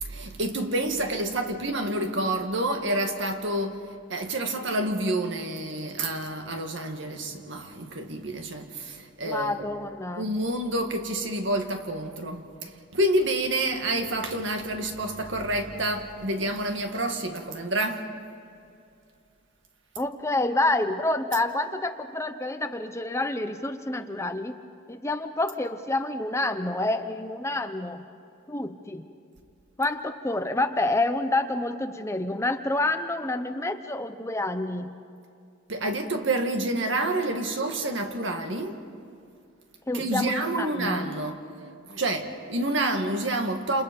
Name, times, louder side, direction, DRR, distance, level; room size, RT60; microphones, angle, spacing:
voice 1, 0.0-3.8 4.1-9.7 10.2-18.1 35.7-38.8 39.9-41.4 41.9-43.8, right 1 dB, 60° right, 2.0 m, -28 dB
voice 2, 9.2-10.3 20.0-24.5 24.9-28.1 28.5-29.0 29.8-34.9 39.9-41.1, left 2 dB, 15° left, 0.7 m, -28 dB
28.5 x 28.5 x 5.3 m
head